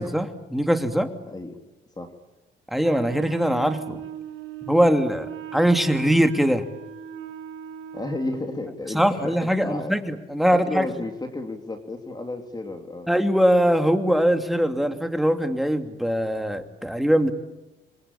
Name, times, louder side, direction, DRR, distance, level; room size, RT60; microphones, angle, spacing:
voice 1, 0.0-1.1 2.7-4.0 4.7-6.6 8.9-10.9 13.1-17.3, equal, ahead, 6 dB, 2.7 m, -22 dB
voice 2, 1.3-1.6 2.0-2.1 7.9-9.9 10.5-13.1, left 2 dB, 20° left, 5 dB, 3.3 m, -32 dB
Wind instrument woodwind instrument, 2.8-8.7, right 10 dB, 85° right, 2.2 m, -38 dB
28.0 x 23.5 x 8.8 m, 1.0 s
cardioid pair, 90°, 20 cm